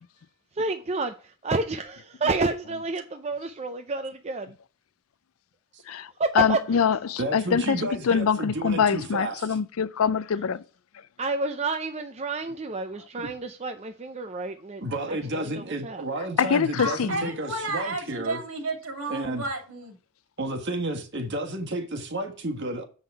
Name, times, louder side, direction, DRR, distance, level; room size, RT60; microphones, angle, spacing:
voice 1, 0.6-4.6 6.2-6.8 10.3-10.4 11.2-14.8 15.1-16.0, right 3 dB, 30° right, 0.5 m, -30 dB
voice 2, 6.4-10.6 16.4-17.3, left 6 dB, 80° left, 0.5 m, -24 dB
voice 3, 7.2-9.6 13.2-13.3 14.8-18.4 19.1-19.4 20.4-22.8, right 1 dB, 55° right, 1.6 m, -31 dB
voice 4, 16.8-19.9, right 2 dB, 80° right, 2.7 m, -32 dB
8.0 x 5.7 x 4.6 m
head